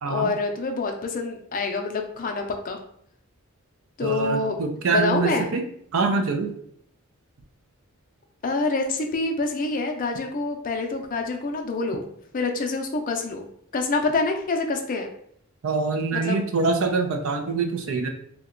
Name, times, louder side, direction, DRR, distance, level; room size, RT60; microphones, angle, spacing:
voice 1, 0.0-2.8 4.0-4.6 4.9-5.5 8.4-12.1 12.3-13.4 13.7-15.1 16.1-16.4, left 3 dB, 40° left, 4 dB, 0.4 m, -26 dB
voice 2, 4.0-5.6 5.9-6.5 15.6-18.1, right 4 dB, 70° right, 4 dB, 0.5 m, -24 dB
2.8 x 2.2 x 3.6 m, 0.68 s
head